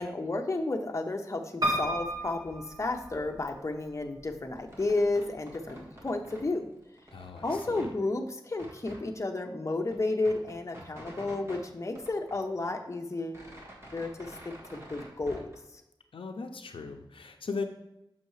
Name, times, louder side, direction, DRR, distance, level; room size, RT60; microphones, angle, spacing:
voice 1, 0.0-6.7 7.4-13.4 13.9-15.5, left 2 dB, 35° left, 3 dB, 0.7 m, -32 dB
Piano, 1.6-3.6 4.2-4.9 5.3-5.4 5.6-5.7, right 1 dB, 45° right, 1.6 m, -32 dB
sound 1, 4.6-6.5 6.8-7.9 8.5-9.0 9.5-9.6 9.8-11.6 11.9-12.8 13.1-15.5, right 1 dB, 30° right, 1.7 m, -48 dB
voice 2, 7.1-7.9 16.1-17.6, left 4 dB, 80° left, 5 dB, 0.5 m, -38 dB
6.5 x 5.6 x 3.1 m, 0.89 s
wide cardioid pair, 95°, 9 cm